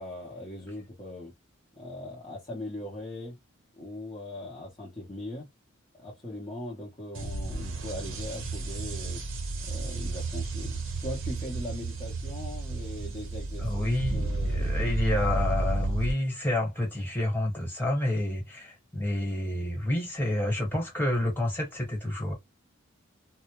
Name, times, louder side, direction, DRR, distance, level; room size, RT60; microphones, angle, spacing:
voice 1, 0.0-1.3 1.7-3.4 3.7-5.5 5.9-9.2 9.6-15.2, left 1 dB, 25° left, 0.7 m, -40 dB
sound 1, 7.1-16.1, right 2 dB, 65° right, 0.7 m, -32 dB
voice 2, 13.6-22.3, left 1 dB, 10° left, 1.1 m, -29 dB
2.1 x 2.0 x 2.9 m
head